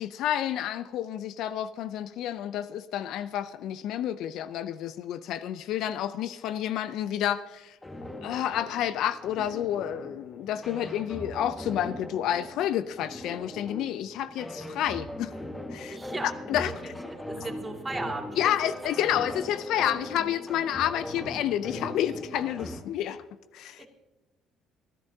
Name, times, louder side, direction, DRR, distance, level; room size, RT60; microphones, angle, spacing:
voice 1, 0.0-7.8 8.2-15.3 15.7-16.0 16.5-16.7 18.4-23.2 23.5-23.9, left 11 dB, 70° left, 0.5 m, -30 dB
sound 1, 7.8-22.8, left 1 dB, 15° left, 1.7 m, -40 dB
voice 2, 15.9-16.3 16.8-18.7 23.8-23.9, right 2 dB, 20° right, 2.6 m, -37 dB
28.5 x 11.0 x 2.8 m
hypercardioid pair, 60°, 0 cm